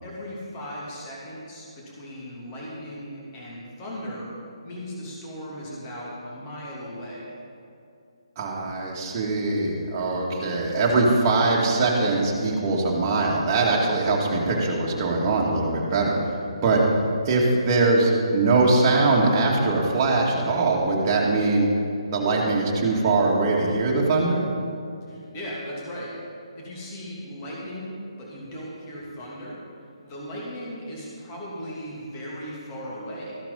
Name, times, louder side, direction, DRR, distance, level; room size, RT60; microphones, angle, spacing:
voice 1, 0.0-4.3 4.6-7.3 25.1-26.1 26.5-29.6 30.0-33.3, equal, 25° left, -5 dB, 2.9 m, -37 dB
voice 2, 8.4-16.2 16.6-16.8 17.3-21.7 22.1-24.4, right 3 dB, 30° right, -3 dB, 2.3 m, -22 dB
14.5 x 11.5 x 4.1 m, 2.5 s
figure-of-eight pair, 140°, 3 cm